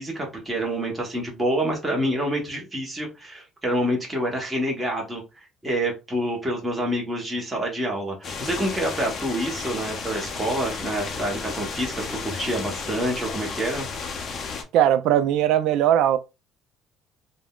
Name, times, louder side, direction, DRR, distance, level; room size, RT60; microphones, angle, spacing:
voice 1, 0.0-13.9, right 1 dB, 10° right, 0.9 m, -27 dB
sound 1, 8.2-14.6, left 5 dB, 40° left, 0.5 m, -33 dB
voice 2, 14.7-16.2, right 11 dB, 75° right, 0.3 m, -19 dB
3.5 x 2.1 x 2.3 m
cardioid pair, 160°, 0 cm